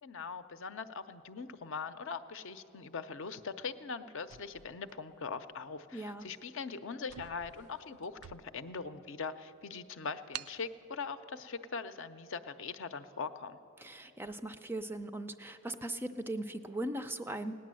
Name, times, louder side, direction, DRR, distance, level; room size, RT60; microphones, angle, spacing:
voice 1, 0.0-13.6, left 5 dB, 60° left, 11 dB, 0.6 m, -41 dB
sound 1, 4.2-5.5 6.2-6.4 6.7-6.8 7.0-8.8 9.3-9.4 10.3-10.6, right 11 dB, 85° right, 0.4 m, -48 dB
voice 2, 5.9-6.3 13.8-17.5, right 1 dB, 10° right, 10 dB, 0.4 m, -39 dB
17.5 x 9.9 x 7.6 m, 2.9 s
head